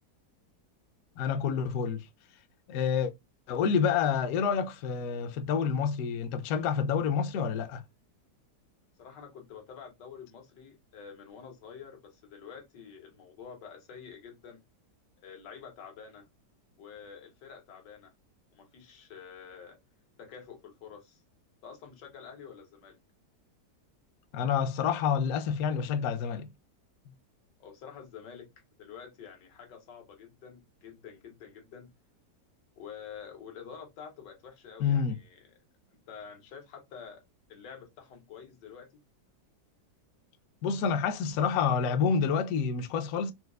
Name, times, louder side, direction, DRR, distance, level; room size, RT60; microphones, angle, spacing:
voice 1, 1.2-2.1 2.7-3.1 3.5-7.8 24.3-26.5 34.8-35.2 40.6-43.3, left 6 dB, 70° left, 0.9 m, -28 dB
voice 2, 9.0-14.6 15.2-16.3 16.8-18.1 18.5-19.8 20.2-21.2 21.6-23.0 27.6-28.5 28.8-31.9 32.8-35.5 35.9-37.2 37.5-39.0, left 7 dB, 90° left, 1.6 m, -48 dB
4.4 x 2.3 x 2.3 m
omnidirectional pair, 1.8 m